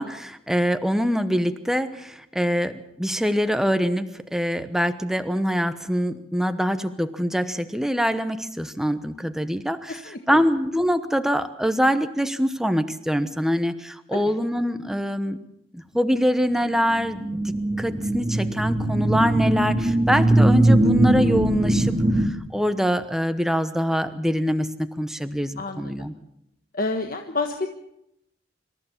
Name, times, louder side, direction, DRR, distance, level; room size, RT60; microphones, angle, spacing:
voice 1, 0.0-15.4 15.7-17.4 17.8-26.1, equal, ahead, 9 dB, 1.0 m, -24 dB
voice 2, 9.9-10.4 14.1-14.2 25.6-25.9 26.7-27.7, left 3 dB, 45° left, 5 dB, 1.4 m, -29 dB
sound 1, 17.0-22.3, right 1 dB, 25° right, 2.4 m, -20 dB
26.5 x 14.5 x 7.3 m, 0.82 s
head